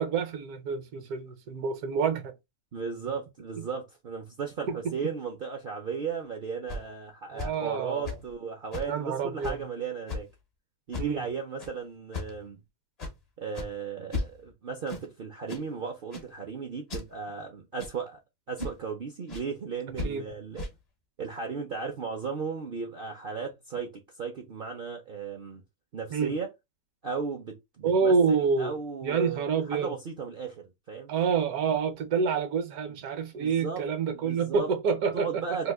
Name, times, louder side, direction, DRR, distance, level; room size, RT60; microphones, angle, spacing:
voice 1, 0.0-2.3 3.6-3.7 4.7-5.0 7.3-8.2 8.8-9.7 11.0-11.2 20.0-20.2 26.1-26.3 27.8-28.7 29.0-29.9 31.1-35.7, right 5 dB, 75° right, 1.2 m, -28 dB
voice 2, 2.7-10.3 10.9-12.6 13.4-18.2 18.5-20.7 21.2-25.6 25.9-26.5 27.0-28.1 28.6-31.1 33.3-33.8 34.1-34.7 35.1-35.7, right 5 dB, 60° right, 0.6 m, -35 dB
sound 1, 6.1-6.2 6.7-6.9 7.4-7.6 8.0-8.3 8.7-8.9 9.4-9.6 10.1-10.3 10.9-11.2 11.6-11.7 12.1-12.4 13.0-13.2 13.5-13.7 14.1-14.5 14.9-15.1 15.5-15.7 16.1-16.3 16.9-17.1 17.8-18.1 18.6-18.8 19.3-19.5 20.0-20.1 20.6-20.7, left 2 dB, 45° left, 0.5 m, -35 dB
2.9 x 2.4 x 3.4 m
omnidirectional pair, 1.6 m